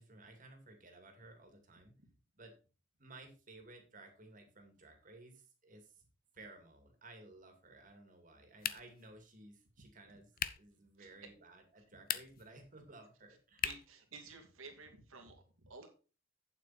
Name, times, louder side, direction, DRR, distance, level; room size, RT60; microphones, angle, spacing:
voice 1, 0.0-2.0 2.3-2.5 3.0-6.0 6.3-10.3 10.6-13.7, right 2 dB, 40° right, 5 dB, 2.4 m, -56 dB
sound 1, 8.6-9.1 10.4-10.7 11.9-12.5 13.6-14.0, left 10 dB, 45° left, 0.6 m, -39 dB
voice 2, 13.6-15.9, right 4 dB, 85° right, 4 dB, 2.5 m, -52 dB
8.8 x 7.5 x 4.2 m, 0.35 s
head